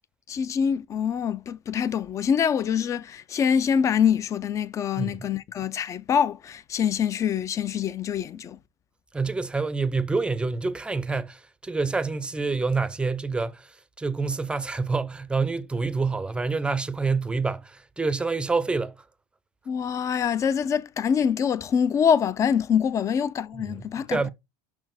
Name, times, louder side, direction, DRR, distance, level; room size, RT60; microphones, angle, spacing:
voice 1, 0.3-8.6 19.7-24.2, left 7 dB, 30° left, 0.6 m, -25 dB
voice 2, 5.0-5.3 9.1-19.0 23.5-23.8 24.1-24.3, right 4 dB, 10° right, 0.6 m, -27 dB
6.0 x 4.4 x 5.9 m
supercardioid pair, 115°, 10 cm